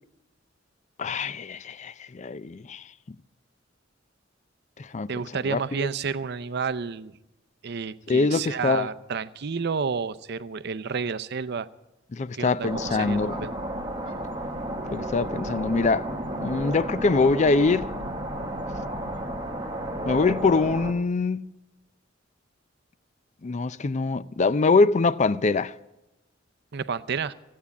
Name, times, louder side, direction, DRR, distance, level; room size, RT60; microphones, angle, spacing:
voice 1, 1.0-2.8 4.8-5.1 5.5-5.9 8.1-8.9 12.1-13.5 14.9-16.1 16.4-17.9 20.1-21.5 23.4-25.7, left 3 dB, 35° left, 0.4 m, -24 dB
voice 2, 5.1-7.1 7.6-11.7 12.3-13.6 26.7-27.3, right 5 dB, 60° right, 0.6 m, -30 dB
sound 1, 12.6-20.9, right 1 dB, 25° right, 1.3 m, -32 dB
16.0 x 8.6 x 8.2 m
head